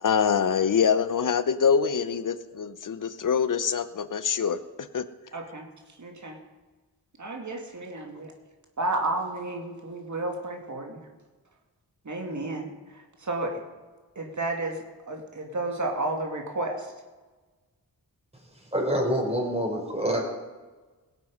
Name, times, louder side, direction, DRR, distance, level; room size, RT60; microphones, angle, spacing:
voice 1, 0.0-5.1, left 7 dB, 55° left, 13 dB, 0.9 m, -25 dB
voice 2, 5.3-5.7 6.0-6.4 7.2-8.3 8.8-11.1 12.0-13.6 14.2-16.9, right 2 dB, 50° right, 2 dB, 2.5 m, -32 dB
voice 3, 18.6-20.2, equal, 15° right, -1 dB, 4.9 m, -26 dB
17.5 x 8.1 x 5.5 m, 1.3 s
cardioid pair, 50°, 38 cm